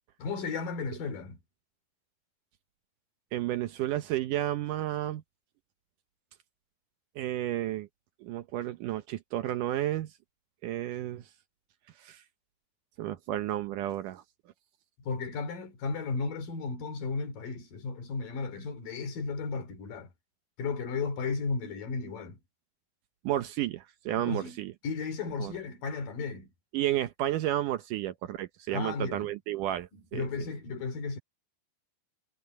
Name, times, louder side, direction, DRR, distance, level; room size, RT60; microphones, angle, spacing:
voice 1, 0.2-1.4 15.1-20.1 20.6-22.4 24.2-24.6 24.8-26.5 28.7-29.3 29.9-31.2, left 4 dB, 55° left, 4.7 m, -34 dB
voice 2, 3.3-5.2 7.1-7.9 8.2-10.1 10.6-11.3 12.0-12.2 13.0-14.2 23.2-24.7 25.4-25.5 26.7-30.5, right 13 dB, 85° right, 1.8 m, -32 dB
omnidirectional pair, 4.9 m